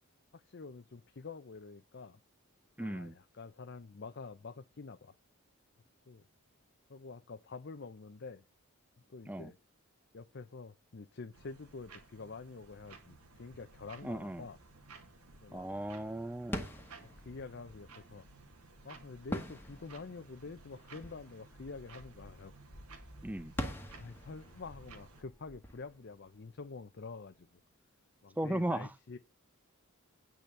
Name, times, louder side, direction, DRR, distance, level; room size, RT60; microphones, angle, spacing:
voice 1, 0.3-2.2 2.8-5.1 6.1-6.2 6.9-8.4 9.1-9.6 10.1-14.6 15.4-15.7 17.0-18.3 18.8-22.5 23.6-27.6 28.2-29.2, left 4 dB, 50° left, 0.6 m, -47 dB
voice 2, 2.8-3.2 9.3-9.5 14.0-14.5 15.5-16.7 23.2-23.5 28.4-28.9, right 1 dB, 5° right, 0.5 m, -36 dB
sound 1, 11.3-25.2, right 3 dB, 90° right, 2.0 m, -57 dB
sound 2, 16.5-27.0, equal, 10° left, 1.4 m, -46 dB
9.3 x 5.0 x 7.4 m
head